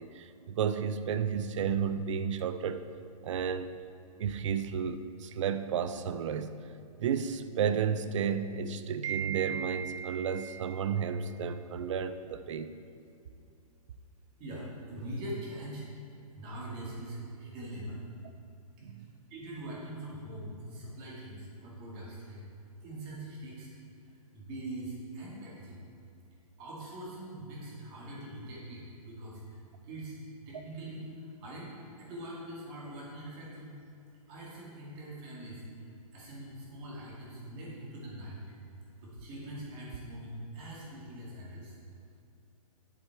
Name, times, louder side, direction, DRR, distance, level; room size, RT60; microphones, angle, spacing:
voice 1, 0.0-2.9 3.2-3.7 4.2-6.6 7.0-12.7 18.8-19.1, right 7 dB, 55° right, 11 dB, 0.5 m, -32 dB
voice 2, 14.4-15.9 16.4-18.0 19.0-22.4 22.8-23.7 24.3-25.8 26.6-30.2 30.5-33.8 34.3-35.6 36.1-38.4 39.0-41.8, right 1 dB, 25° right, -5 dB, 2.2 m, -43 dB
7.7 x 7.6 x 4.6 m, 2.6 s
hypercardioid pair, 150°, 19 cm